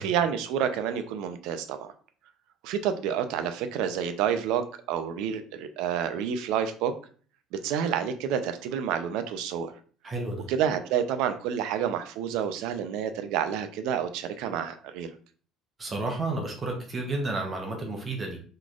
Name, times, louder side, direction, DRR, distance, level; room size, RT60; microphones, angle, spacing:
voice 1, 0.0-1.9 2.6-6.9 7.5-9.7 10.5-15.1, right 8 dB, 80° right, 9 dB, 0.5 m, -29 dB
voice 2, 10.0-10.5 15.8-18.4, right 2 dB, 25° right, 2 dB, 0.7 m, -31 dB
4.0 x 3.1 x 2.4 m, 0.43 s
cardioid pair, 160°, 0 cm